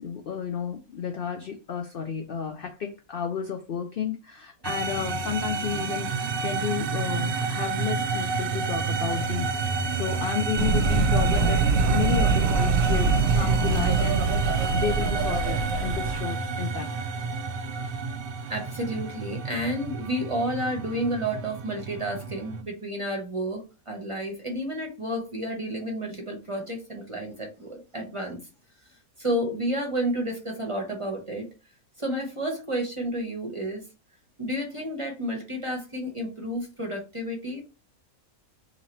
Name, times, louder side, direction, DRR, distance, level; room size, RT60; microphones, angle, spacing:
voice 1, 0.0-16.9, left 7 dB, 70° left, 0.5 m, -32 dB
sound 1, 4.6-22.6, right 4 dB, 85° right, 0.5 m, -30 dB
sound 2, 10.6-16.2, right 4 dB, 65° right, 1.0 m, -23 dB
voice 2, 18.5-28.4 29.2-31.5 32.0-33.8 34.4-37.6, right 1 dB, 25° right, 0.8 m, -31 dB
2.9 x 2.9 x 4.2 m
omnidirectional pair, 1.5 m